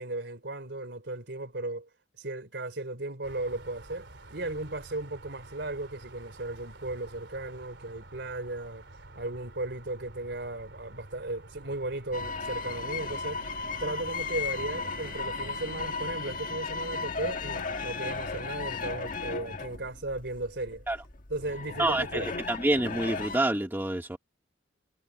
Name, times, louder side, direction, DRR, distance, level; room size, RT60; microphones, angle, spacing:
voice 1, 0.0-1.9 2.2-8.8 9.1-13.4 13.8-20.8 21.3-22.3, right 2 dB, 70° right, 4.0 m, -36 dB
sound 1, 3.2-15.9, right 2 dB, 85° right, 3.2 m, -50 dB
sound 2, 12.1-23.4, left 4 dB, 50° left, 1.7 m, -35 dB
voice 2, 21.8-24.2, right 1 dB, 10° right, 1.1 m, -27 dB
head